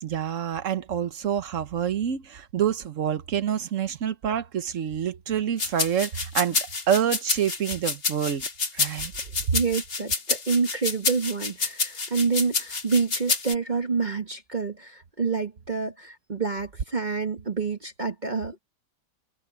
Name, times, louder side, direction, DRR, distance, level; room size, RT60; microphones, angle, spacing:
voice 1, 0.0-8.4 8.7-9.1, right 9 dB, 50° right, 1.3 m, -27 dB
sound 1, 5.6-13.5, left 4 dB, 55° left, 3.1 m, -28 dB
voice 2, 9.5-18.6, right 5 dB, 30° right, 1.4 m, -27 dB
omnidirectional pair, 1.8 m